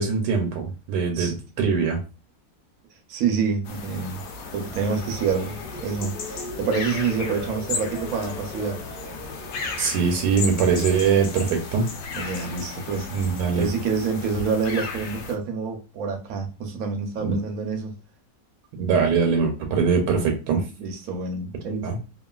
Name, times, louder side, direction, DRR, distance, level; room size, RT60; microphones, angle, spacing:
voice 1, 0.0-2.0 9.8-11.9 13.1-13.7 17.2-17.4 18.8-20.6 21.8-22.0, right 5 dB, 85° right, 1.3 m, -22 dB
voice 2, 3.1-4.2 4.5-8.8 12.2-13.1 13.5-17.9 20.8-21.9, right 5 dB, 70° right, 0.9 m, -27 dB
sound 1, 3.6-15.3, left 4 dB, 75° left, 1.1 m, -35 dB
sound 2, 4.1-11.3 11.7-12.1, left 1 dB, 45° left, 1.0 m, -41 dB
3.0 x 2.4 x 2.2 m
omnidirectional pair, 1.9 m